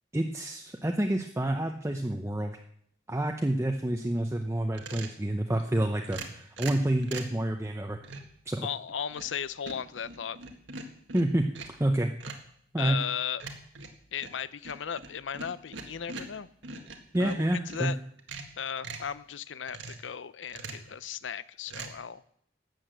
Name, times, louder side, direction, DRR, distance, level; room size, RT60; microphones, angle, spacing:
voice 1, 0.1-2.6 3.1-8.0 8.5-8.7 11.1-11.4 11.8-12.1 12.7-13.0 17.1-17.9, right 1 dB, 15° right, 3 dB, 0.7 m, -28 dB
sound 1, 4.7-5.2 6.1-7.4 8.0-8.4 8.9-9.4 9.7-11.8 12.2-12.5 13.4-17.9 18.2-19.1 19.7-20.1 20.5-20.9 21.7-21.9, right 3 dB, 85° right, 1.8 m, -42 dB
voice 2, 8.6-10.4 12.8-13.4 14.1-16.5 17.2-18.0 18.6-22.2, left 8 dB, 90° left, 16 dB, 0.6 m, -36 dB
12.5 x 8.6 x 7.8 m, 0.67 s
head